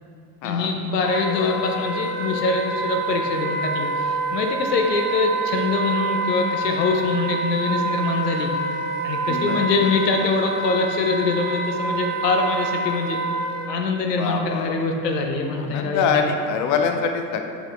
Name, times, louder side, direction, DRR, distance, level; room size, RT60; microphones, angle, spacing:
voice 1, 0.4-8.5 9.0-13.2 13.7-16.0, left 3 dB, 75° left, 3 dB, 0.8 m, -24 dB
Wind instrument woodwind instrument, 1.0-13.7, right 2 dB, 40° right, 1.4 m, -27 dB
voice 2, 9.3-9.7 14.1-14.8 15.6-17.4, left 6 dB, 40° left, 5 dB, 0.6 m, -24 dB
7.3 x 4.9 x 3.3 m, 2.3 s
figure-of-eight pair, 60°, 48 cm